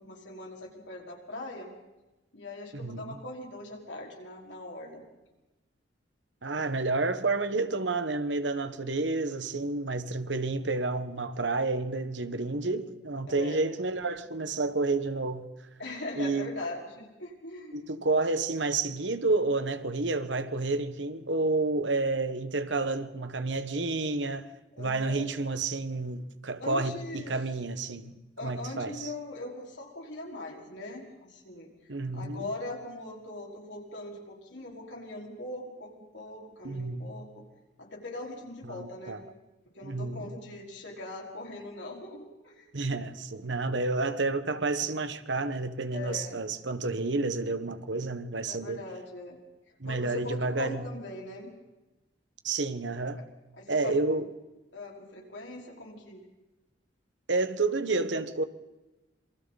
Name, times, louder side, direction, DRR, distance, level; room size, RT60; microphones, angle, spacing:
voice 1, 0.0-1.7 2.3-5.0 12.6-13.6 15.8-17.8 24.8-25.3 26.6-27.4 28.4-31.7 32.1-37.4 37.8-39.2 39.7-42.7 45.9-46.5 48.5-49.4 49.8-51.5 53.2-53.3 53.5-54.0 54.7-56.2, left 2 dB, 85° left, 5.0 m, -41 dB
voice 2, 2.7-3.2 6.4-15.5 16.2-16.5 17.7-24.5 24.8-28.1 28.4-29.1 31.9-32.5 36.6-37.1 38.7-39.2 39.8-40.3 42.7-48.8 49.8-50.9 52.4-53.2 53.7-54.3 57.3-58.4, right 3 dB, 85° right, 1.5 m, -30 dB
27.5 x 24.0 x 4.2 m
head